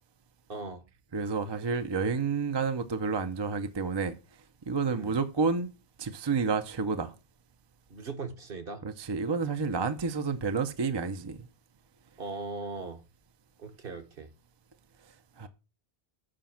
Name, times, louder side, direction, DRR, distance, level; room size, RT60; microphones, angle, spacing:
voice 1, 0.5-0.8 4.9-5.1 7.9-8.8 12.2-13.0 13.6-14.3, right 3 dB, 60° right, 1.3 m, -39 dB
voice 2, 1.1-4.1 4.7-5.7 6.0-7.1 8.8-11.5 15.4-15.5, right 5 dB, 30° right, 0.5 m, -30 dB
7.6 x 5.1 x 5.7 m
omnidirectional pair, 1.1 m